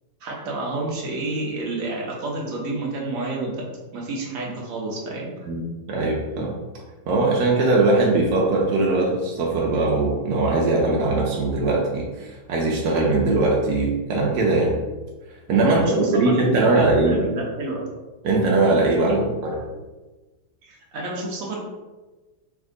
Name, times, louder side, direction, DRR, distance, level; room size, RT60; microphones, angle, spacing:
voice 1, 0.2-3.6 3.9-5.3 15.7-17.8 19.1-19.4 20.6-21.6, right 2 dB, 55° right, -2 dB, 0.9 m, -29 dB
voice 2, 5.9-6.5 7.1-14.8 15.5-17.2 18.2-19.6, right 2 dB, 85° right, -2 dB, 0.8 m, -20 dB
3.5 x 2.7 x 3.7 m, 1.2 s
omnidirectional pair, 2.3 m